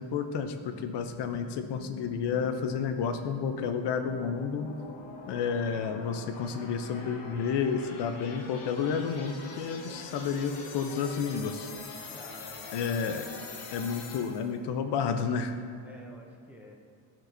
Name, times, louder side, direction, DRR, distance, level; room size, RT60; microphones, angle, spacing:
voice 1, 0.0-4.7 5.3-11.7 12.7-13.3 13.7-15.5, left 6 dB, 60° left, 7 dB, 0.6 m, -31 dB
sound 1, 0.6-14.6, left 3 dB, 80° left, 1.1 m, -44 dB
voice 2, 12.1-12.8 13.2-13.8 15.8-16.7, left 1 dB, 5° right, -1 dB, 0.4 m, -51 dB
13.5 x 4.5 x 2.6 m, 2.3 s
cardioid pair, 160°, 49 cm